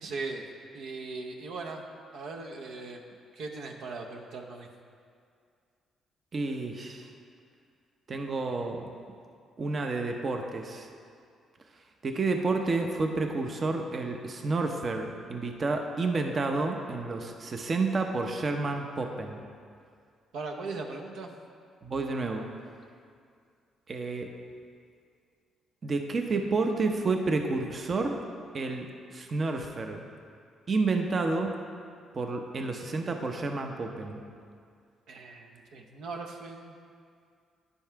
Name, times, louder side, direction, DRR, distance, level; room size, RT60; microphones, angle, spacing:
voice 1, 0.0-0.4 0.7-1.8 2.1-3.0 3.3-4.7 20.3-21.4 35.1-36.7, right 3 dB, 80° right, 1 dB, 0.8 m, -39 dB
voice 2, 6.3-7.1 8.1-8.9 9.6-10.9 12.0-19.4 21.8-22.5 23.9-24.3 25.8-28.2 28.5-30.0 30.7-31.5 32.1-34.2, right 3 dB, 40° right, 3 dB, 0.7 m, -30 dB
9.9 x 5.4 x 4.5 m, 2.2 s
cardioid pair, 90°, 0 cm